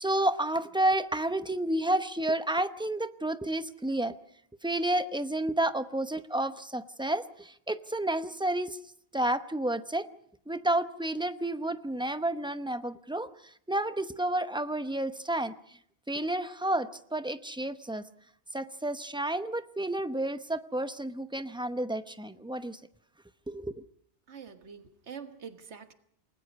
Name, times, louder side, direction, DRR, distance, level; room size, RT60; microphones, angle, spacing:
voice 1, 0.0-4.2 4.6-8.8 9.1-10.1 10.5-15.8 16.1-18.0 18.5-22.8 23.5-23.8, right 1 dB, 5° right, 0.7 m, -30 dB
voice 2, 24.3-25.9, right 6 dB, 80° right, 1.6 m, -45 dB
29.0 x 19.5 x 5.4 m
omnidirectional pair, 1.1 m